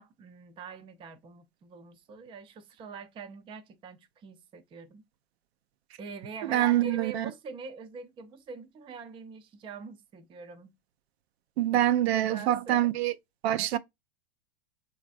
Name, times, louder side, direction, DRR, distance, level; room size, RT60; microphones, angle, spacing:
voice 1, 0.0-5.0 6.0-10.7 12.1-12.9, right 5 dB, 15° right, 0.4 m, -44 dB
voice 2, 6.4-7.3 11.6-13.1 13.4-13.8, right 13 dB, 85° right, 0.5 m, -25 dB
3.1 x 2.4 x 2.5 m
supercardioid pair, 125°, 31 cm